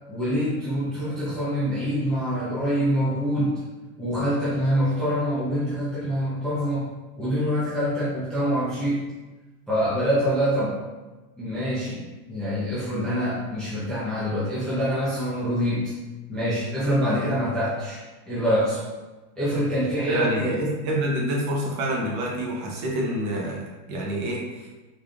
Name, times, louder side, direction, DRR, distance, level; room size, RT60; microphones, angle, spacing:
voice 1, 0.1-3.6 4.0-6.9 7.2-9.0 9.7-10.8 11.4-15.9 16.3-18.9 19.4-20.6, equal, ahead, -10 dB, 0.5 m, -25 dB
voice 2, 20.1-23.6 23.9-24.7, right 1 dB, 35° right, -2 dB, 0.9 m, -27 dB
4.1 x 3.3 x 2.4 m, 1.2 s
supercardioid pair, 145°, 47 cm